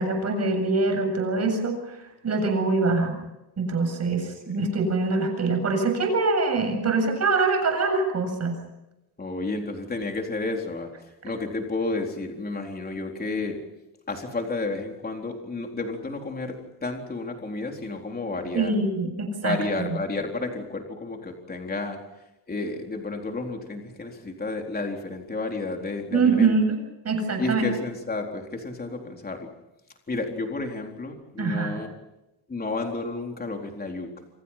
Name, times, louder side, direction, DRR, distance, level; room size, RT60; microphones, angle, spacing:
voice 1, 0.0-2.0 2.2-3.1 3.6-8.6 18.5-20.0 26.1-26.8 27.0-27.7 31.4-31.8, right 3 dB, 35° right, 4 dB, 7.7 m, -24 dB
voice 2, 9.2-10.9 11.2-13.6 14.1-18.7 19.4-22.0 22.5-26.6 27.4-29.5 30.1-31.9 32.5-34.1, left 3 dB, 20° left, 2 dB, 4.0 m, -31 dB
29.0 x 27.0 x 5.8 m, 0.95 s
cardioid pair, 160°, 41 cm